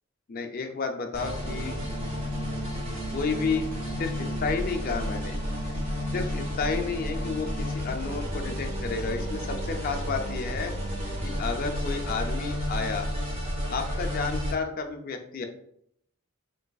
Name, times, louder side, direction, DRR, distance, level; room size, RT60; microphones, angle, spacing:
voice 1, 0.3-1.7 3.1-3.6 4.0-5.4 6.1-10.7 11.2-13.1 13.7-15.5, left 4 dB, 40° left, 5 dB, 0.3 m, -31 dB
sound 1, 1.1-14.5, equal, 25° right, 0.6 m, -31 dB
3.8 x 2.4 x 2.3 m, 0.71 s
head